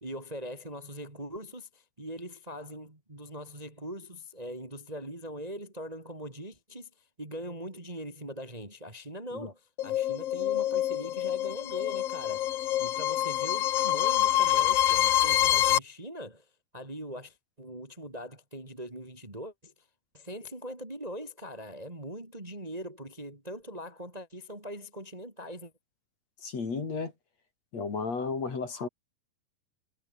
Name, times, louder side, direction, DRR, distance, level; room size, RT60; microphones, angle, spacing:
voice 1, 0.0-16.5 16.7-19.7 20.1-25.7, equal, 10° right, 2.8 m, -41 dB
sound 1, 9.8-15.8, left 13 dB, 90° left, 1.3 m, -26 dB
voice 2, 26.4-27.1 27.7-28.9, left 4 dB, 45° left, 5.1 m, -33 dB
omnidirectional pair, 4.2 m